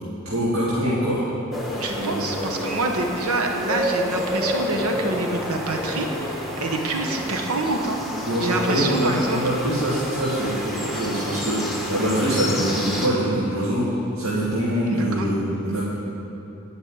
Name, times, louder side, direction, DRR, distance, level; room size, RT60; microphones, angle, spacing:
voice 1, 0.3-1.2 2.0-2.2 8.3-13.9 14.2-15.8, right 1 dB, 65° right, -9 dB, 2.2 m, -24 dB
sound 1, 1.5-13.1, left 1 dB, ahead, 1.0 m, -30 dB
voice 2, 1.8-9.4 14.9-15.3, right 2 dB, 80° right, 2 dB, 1.1 m, -26 dB
9.9 x 5.5 x 8.4 m, 2.9 s
head